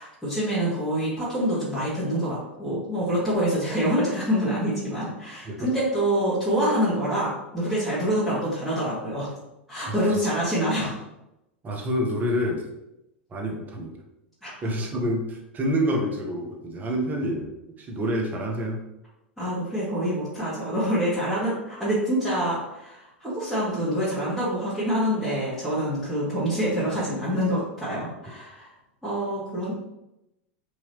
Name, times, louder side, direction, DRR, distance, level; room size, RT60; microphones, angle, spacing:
voice 1, 0.0-9.3 9.7-11.0 14.4-14.5 19.4-28.7 29.0-29.7, equal, ahead, -12 dB, 1.4 m, -26 dB
voice 2, 11.6-12.7 13.3-13.9 14.6-17.5 17.8-18.8, equal, 25° right, 2 dB, 0.7 m, -27 dB
3.1 x 2.8 x 2.8 m, 0.89 s
figure-of-eight pair, 85°, 6 cm